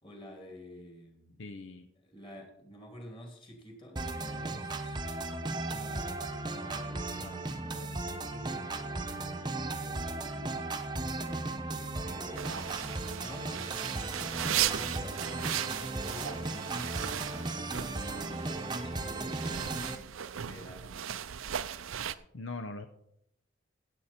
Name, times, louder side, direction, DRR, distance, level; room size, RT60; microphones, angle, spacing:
voice 1, 0.0-1.4 2.0-5.1 5.6-10.6 11.8-16.9 17.3-19.8 20.4-21.2, equal, 25° left, 2 dB, 2.7 m, -50 dB
voice 2, 1.4-1.9 22.3-22.9, left 3 dB, 65° left, 8 dB, 0.7 m, -40 dB
sound 1, 4.0-20.0, right 2 dB, 20° right, 0.9 m, -36 dB
sound 2, 12.4-22.1, right 10 dB, 75° right, 0.5 m, -37 dB
16.0 x 8.2 x 4.3 m, 0.74 s
head